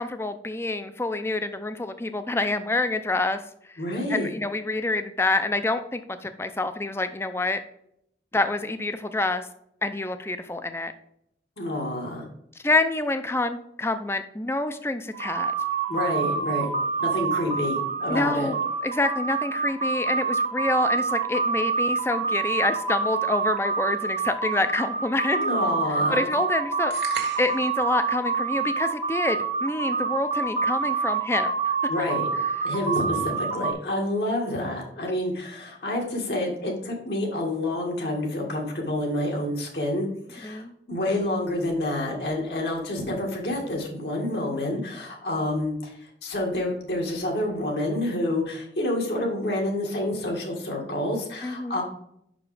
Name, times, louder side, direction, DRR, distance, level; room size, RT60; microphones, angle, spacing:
voice 1, 0.0-3.4 3.7-3.8 4.1-7.6 8.3-9.5 9.8-10.9 12.6-15.5 18.1-18.6 18.8-25.5 26.1-27.1 27.4-31.7 40.4-40.7 51.4-51.8, left 2 dB, 15° left, 10 dB, 0.4 m, -27 dB
voice 2, 3.8-4.3 11.6-12.2 15.9-16.7 17.0-18.5 25.3-26.3 31.9-32.3 32.6-45.9 46.2-51.8, left 1 dB, 70° left, 0 dB, 1.7 m, -28 dB
sound 1, 15.1-33.7, right 4 dB, 40° right, 0.7 m, -27 dB
sound 2, 26.9-27.7, right 5 dB, 75° right, 1.3 m, -35 dB
5.7 x 5.0 x 4.8 m, 0.74 s
head